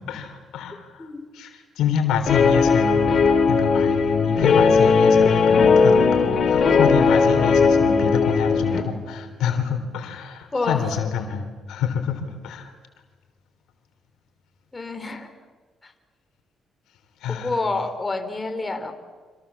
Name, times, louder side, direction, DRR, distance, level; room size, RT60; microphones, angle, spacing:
voice 1, 0.0-12.7 17.2-17.6, left 7 dB, 85° left, 6 dB, 3.6 m, -27 dB
voice 2, 0.7-1.2 10.5-10.9 14.7-15.3 15.8-15.9 17.3-18.9, left 3 dB, 20° left, 6 dB, 3.9 m, -28 dB
Guitar, 2.3-8.8, left 5 dB, 55° left, 3.4 m, -17 dB
30.0 x 26.5 x 7.2 m, 1.4 s
cardioid pair, 90°, 0 cm